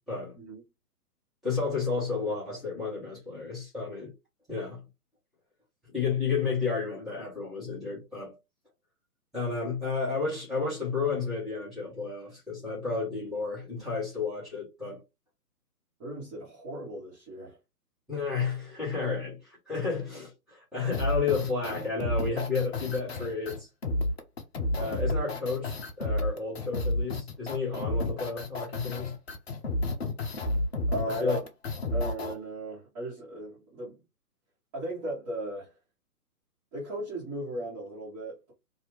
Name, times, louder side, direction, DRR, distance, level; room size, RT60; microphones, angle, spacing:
voice 1, 1.4-4.1 4.5-4.8 5.9-8.3 9.3-15.0 18.1-23.7 24.8-29.1 31.1-31.4, left 4 dB, ahead, 0.9 m, -32 dB
voice 2, 16.0-17.6 30.9-31.4 31.9-34.0 34.7-35.7 36.7-38.5, right 1 dB, 20° right, 1.4 m, -36 dB
sound 1, 20.9-32.3, left 1 dB, 40° left, 0.6 m, -31 dB
2.8 x 2.5 x 3.1 m
figure-of-eight pair, 130°, 48 cm